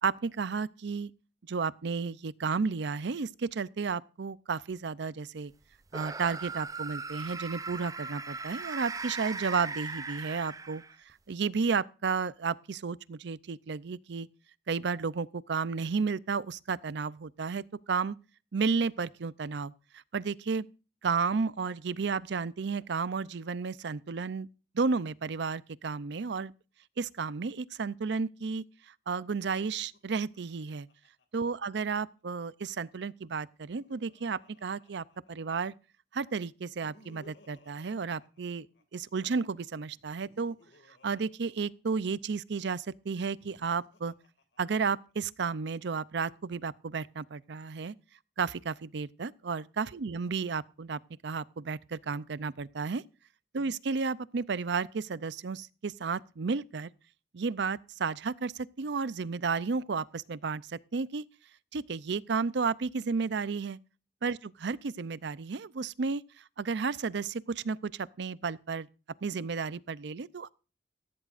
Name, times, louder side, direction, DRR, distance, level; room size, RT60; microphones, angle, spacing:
voice 1, 0.0-1.1 1.5-5.5 5.9-10.8 11.3-14.3 14.7-18.2 18.5-20.7 21.0-24.5 24.7-26.5 27.0-30.9 31.3-35.7 36.1-38.7 38.9-40.6 40.9-44.1 44.6-47.9 48.4-53.0 53.5-56.9 57.3-61.2 61.7-63.8 64.2-68.9 69.2-70.5, right 5 dB, 70° right, 0.5 m, -32 dB
sound 1, 5.9-11.1, right 4 dB, 20° right, 0.5 m, -39 dB
Laughter, 29.4-32.0 33.3-35.7 36.5-39.1 39.9-42.3 43.2-45.1, left 2 dB, 70° left, 2.3 m, -62 dB
16.0 x 14.5 x 2.5 m
head